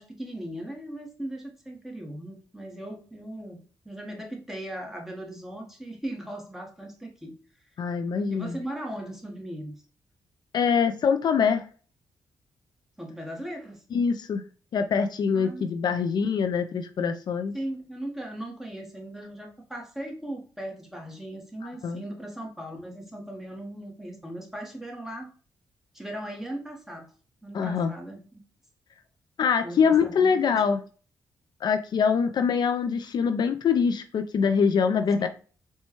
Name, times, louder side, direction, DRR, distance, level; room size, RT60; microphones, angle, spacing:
voice 1, 0.0-7.3 8.3-9.7 13.0-13.8 15.3-15.9 17.5-25.3 25.9-27.1 27.4-28.2 29.6-30.6, right 1 dB, 5° right, 1 dB, 1.0 m, -38 dB
voice 2, 7.8-8.6 10.5-11.6 13.9-14.4 14.7-17.5 21.8-22.0 27.5-27.9 29.4-30.8 31.6-35.3, left 6 dB, 60° left, 7 dB, 0.4 m, -24 dB
4.2 x 2.2 x 2.9 m, 0.39 s
cardioid pair, 80°, 8 cm